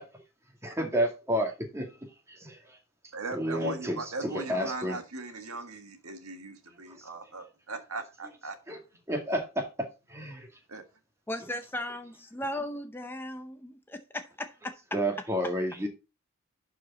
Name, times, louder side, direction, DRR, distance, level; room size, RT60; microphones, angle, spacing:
voice 1, 0.6-1.9 2.3-2.8 3.3-5.0 6.9-7.0 8.7-8.8 9.1-9.4 10.1-10.5 14.9-15.9, equal, 15° right, 2.1 m, -30 dB
voice 2, 3.1-8.6 10.7-10.8, right 3 dB, 80° right, 1.7 m, -39 dB
voice 3, 11.3-14.8, left 1 dB, 10° left, 0.6 m, -37 dB
11.5 x 4.9 x 4.0 m
head